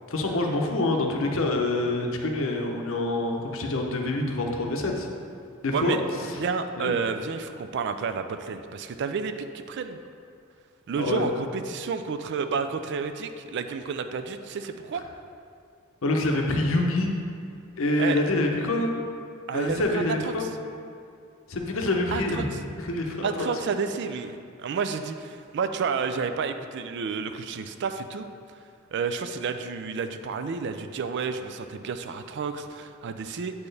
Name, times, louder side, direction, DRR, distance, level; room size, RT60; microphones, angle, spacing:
voice 1, 0.1-5.1 5.6-6.0 6.3-6.4 6.8-7.0 11.0-11.3 16.0-17.1 17.8-18.9 19.5-20.5 21.5-22.5 22.8-23.5, left 2 dB, 60° left, 2 dB, 0.7 m, -26 dB
voice 2, 6.4-10.0 10.9-15.0 18.0-18.2 19.5-20.3 22.1-22.4 23.2-28.3 28.9-33.7, right 5 dB, 55° right, 9 dB, 0.3 m, -30 dB
8.2 x 4.4 x 3.3 m, 2.4 s
head